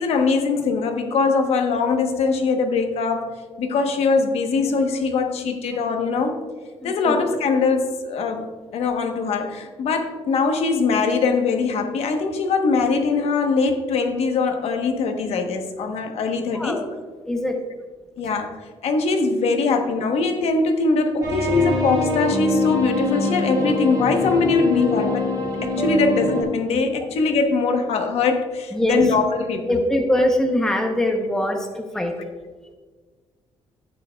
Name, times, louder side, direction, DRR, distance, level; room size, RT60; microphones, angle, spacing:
voice 1, 0.0-3.3 3.6-6.4 6.8-8.5 8.7-16.8 17.5-17.6 18.2-18.5 18.8-25.2 25.6-29.8, left 4 dB, 65° left, 5 dB, 1.0 m, -22 dB
voice 2, 6.8-7.2 16.5-16.8 17.3-17.6 25.0-25.1 28.7-29.0 29.7-32.1, left 1 dB, 5° left, 3 dB, 0.7 m, -22 dB
sound 1, 21.2-26.4, left 1 dB, 35° right, 2.4 m, -24 dB
12.0 x 8.9 x 2.3 m, 1.4 s
cardioid pair, 175°, 11 cm